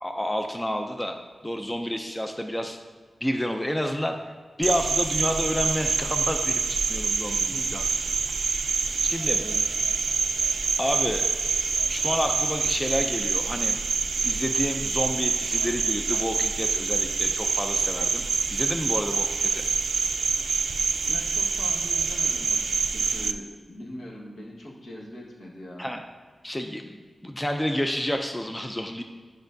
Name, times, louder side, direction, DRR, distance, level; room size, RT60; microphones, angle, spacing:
voice 1, 0.0-1.2 1.4-2.8 3.2-4.2 4.6-7.8 9.0-9.4 10.8-11.3 11.9-13.8 14.2-19.6 25.8-26.0 26.4-29.0, equal, 10° left, 5 dB, 0.3 m, -29 dB
Cricket, 4.6-23.3, right 5 dB, 70° right, 0.3 m, -26 dB
voice 2, 9.4-9.7 21.1-25.9, equal, 70° left, -4 dB, 1.3 m, -41 dB
8.9 x 5.2 x 2.6 m, 1.5 s
wide cardioid pair, 125°, 0 cm